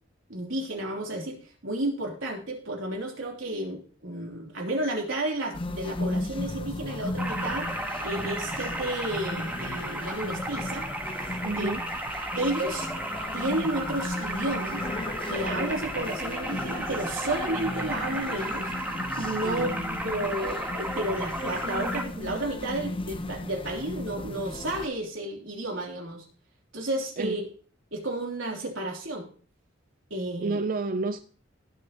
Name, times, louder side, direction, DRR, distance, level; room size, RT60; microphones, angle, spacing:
voice 1, 0.3-1.4 1.6-7.7 8.0-10.9 11.6-11.7 12.3-12.9 13.3-14.8 15.3-18.7 19.2-19.7 20.0-26.2 26.7-27.4 27.9-29.3 30.1-30.6, right 1 dB, 85° right, 3.3 m, -32 dB
sound 1, 5.5-24.9, left 1 dB, 25° left, 0.7 m, -36 dB
sound 2, 7.2-22.0, right 1 dB, 10° right, 1.5 m, -34 dB
voice 2, 11.4-11.8 19.4-20.0 27.2-27.4 30.4-31.2, right 3 dB, 45° right, 0.5 m, -30 dB
19.0 x 6.5 x 3.0 m
head